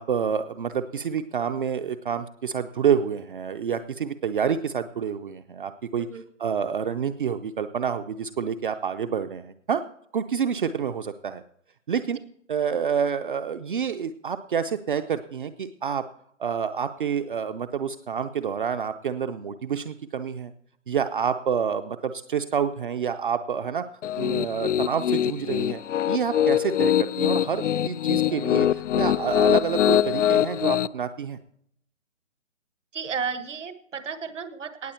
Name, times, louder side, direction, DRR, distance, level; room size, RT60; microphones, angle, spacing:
voice 1, 0.0-6.1 6.4-9.8 10.1-11.4 11.9-12.2 12.5-16.0 16.4-20.5 20.9-23.8 24.2-25.8 26.1-31.4, right 7 dB, 40° right, 8 dB, 0.6 m, -28 dB
Piano, 24.0-30.9, left 11 dB, 70° left, 0.5 m, -23 dB
voice 2, 32.9-34.9, right 6 dB, 70° right, 11 dB, 1.6 m, -33 dB
18.0 x 7.4 x 4.4 m, 0.68 s
hypercardioid pair, 155°, 38 cm